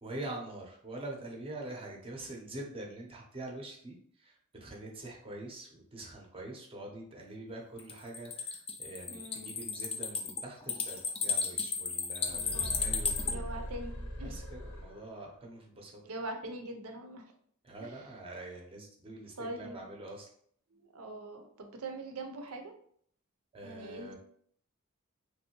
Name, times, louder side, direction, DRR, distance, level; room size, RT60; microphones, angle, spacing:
voice 1, 0.0-13.5 14.2-16.0 17.6-20.3 23.5-24.2, right 2 dB, 25° right, 0 dB, 0.6 m, -45 dB
sound 1, 7.8-13.3, left 5 dB, 25° left, 0.4 m, -34 dB
voice 2, 9.1-9.7 12.3-13.0 13.3-14.4 16.0-17.2 17.8-18.1 19.4-19.8 20.7-22.7 23.6-24.2, right 2 dB, 85° right, 5 dB, 0.6 m, -43 dB
sound 2, 12.2-15.3, equal, 80° left, 0.9 m, -40 dB
3.0 x 2.7 x 2.9 m, 0.62 s
head